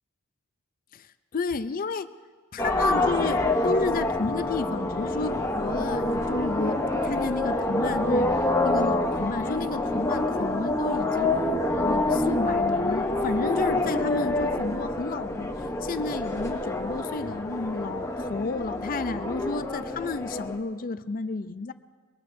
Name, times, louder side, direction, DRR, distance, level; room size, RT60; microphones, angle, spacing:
voice 1, 0.9-2.1 2.5-21.7, left 4 dB, 40° left, 12 dB, 0.4 m, -32 dB
sound 1, 2.6-20.6, left 2 dB, 15° left, 0.9 m, -27 dB
22.5 x 19.0 x 2.7 m, 1.5 s
head